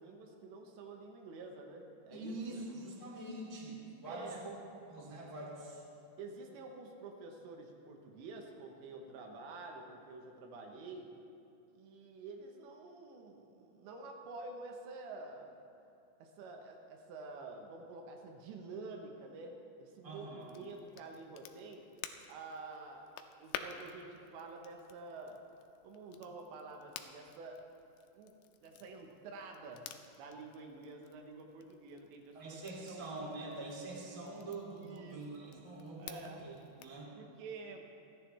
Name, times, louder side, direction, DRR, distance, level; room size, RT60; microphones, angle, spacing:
voice 1, 0.0-2.7 4.1-4.4 6.2-11.1 11.7-15.6 16.2-21.9 22.3-23.0 23.4-25.4 25.8-27.6 28.2-28.3 28.6-29.9 30.1-32.6 32.9-33.1 34.8-35.6 36.0-36.5 37.2-37.9, right 3 dB, 85° right, 2 dB, 3.5 m, -49 dB
voice 2, 2.1-4.5 4.9-5.8 20.0-20.5 32.3-36.5 36.8-37.1, right 2 dB, 10° right, -4 dB, 1.8 m, -45 dB
Crackle, 20.4-37.0, left 9 dB, 85° left, 2.9 m, -52 dB
29.0 x 11.0 x 3.5 m, 2.6 s
omnidirectional pair, 5.1 m